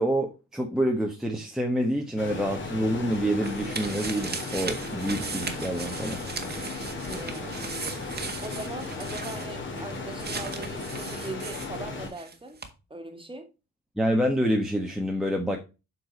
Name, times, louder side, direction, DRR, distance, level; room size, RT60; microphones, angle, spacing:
voice 1, 0.0-6.2 14.0-15.6, equal, ahead, 1.4 m, -27 dB
sound 1, 2.2-12.1, left 3 dB, 40° left, 3.0 m, -36 dB
sound 2, 2.7-12.3 12.6-12.7, right 4 dB, 30° right, 1.6 m, -38 dB
voice 2, 7.1-7.7 8.4-12.6 12.9-13.5, right 2 dB, 15° right, 2.1 m, -40 dB
7.7 x 4.7 x 5.4 m
cardioid pair, 90°, 30 cm